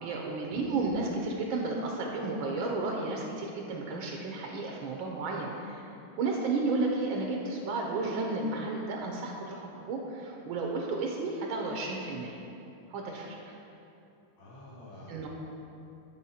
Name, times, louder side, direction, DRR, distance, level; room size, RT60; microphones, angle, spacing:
voice 1, 0.0-5.9 6.2-12.4 12.9-13.5 15.1-15.3, right 3 dB, 75° right, 0 dB, 1.4 m, -32 dB
voice 2, 14.4-15.3, left 1 dB, 80° left, -6 dB, 2.4 m, -49 dB
8.8 x 4.3 x 4.1 m, 2.7 s
omnidirectional pair, 2.3 m